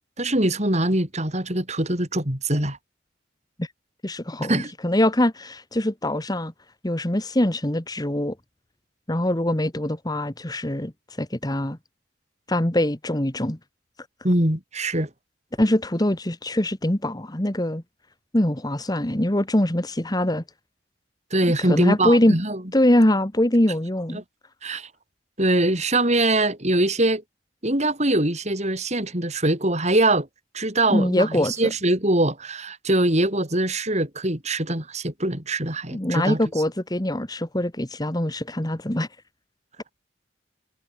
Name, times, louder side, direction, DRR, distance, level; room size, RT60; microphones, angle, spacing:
voice 1, 0.2-2.8 4.4-4.7 14.2-15.1 21.3-22.6 24.1-24.2 24.6-24.9 25.4-27.2 27.6-30.3 30.5-36.4, right 1 dB, 35° right, 5.7 m, -23 dB
voice 2, 4.0-6.5 6.8-8.3 9.1-10.9 11.2-11.8 12.5-13.6 15.6-17.8 18.3-20.4 21.6-22.4 22.7-24.2 30.9-31.5 35.9-39.1, left 1 dB, 20° left, 1.6 m, -23 dB
head